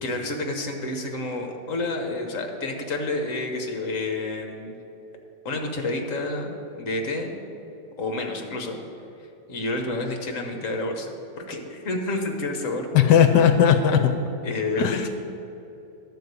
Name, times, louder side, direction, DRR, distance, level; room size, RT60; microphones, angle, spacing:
voice 1, 0.0-4.7 5.4-7.3 8.0-8.8 9.5-11.1 11.4-13.3 14.4-15.1, left 2 dB, 50° left, 4 dB, 1.3 m, -29 dB
voice 2, 12.9-14.1 14.8-15.1, left 8 dB, 75° left, 8 dB, 1.2 m, -17 dB
11.5 x 4.6 x 8.1 m, 2.9 s
omnidirectional pair, 1.9 m